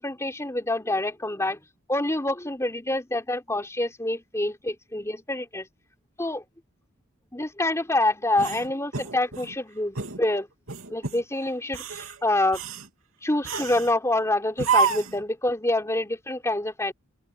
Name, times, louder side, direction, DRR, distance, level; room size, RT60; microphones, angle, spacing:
voice 1, 0.0-1.6 1.9-5.7 6.2-6.4 7.3-10.5 10.9-12.6 13.2-16.9, left 1 dB, 15° left, 3.7 m, -26 dB
sound 1, 8.4-9.5 10.0-10.2 10.7-11.2 11.7-12.2 12.5-12.9 13.4-13.9 14.6-15.2, right 5 dB, 75° right, 3.2 m, -28 dB
open air
head